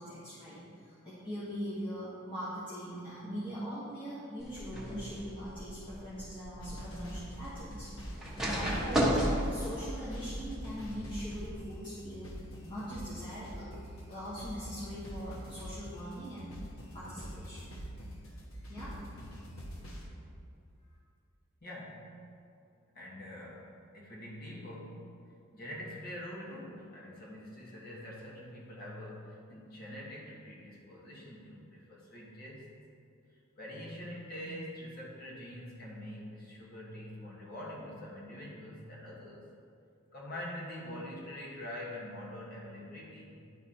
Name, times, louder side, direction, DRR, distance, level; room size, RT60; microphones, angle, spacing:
voice 1, 0.0-12.3 12.6-13.7 14.1-16.5 16.9-17.7 18.7-19.0, equal, 25° left, -11 dB, 1.4 m, -41 dB
sound 1, 4.4-11.6, equal, ahead, 1.1 m, -35 dB
sound 2, 6.6-20.1, equal, 75° left, 1.1 m, -45 dB
voice 2, 21.6-22.2 22.9-25.1 25.5-32.6 33.6-39.4 40.1-43.3, left 1 dB, 50° left, -4 dB, 1.6 m, -45 dB
10.5 x 4.1 x 4.3 m, 2.4 s
head